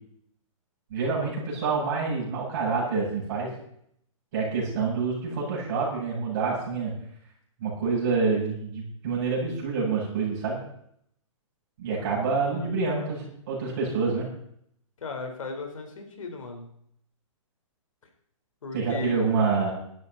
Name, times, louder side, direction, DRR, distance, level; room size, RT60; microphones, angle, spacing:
voice 1, 0.9-3.5 4.3-6.9 7.6-10.6 11.8-14.3 18.7-19.7, right 4 dB, 35° right, -4 dB, 8.0 m, -27 dB
voice 2, 12.0-12.8 15.0-16.7 18.6-19.2, left 3 dB, 70° left, 4 dB, 4.2 m, -37 dB
18.5 x 12.5 x 4.2 m, 0.70 s
hypercardioid pair, 175°, 18 cm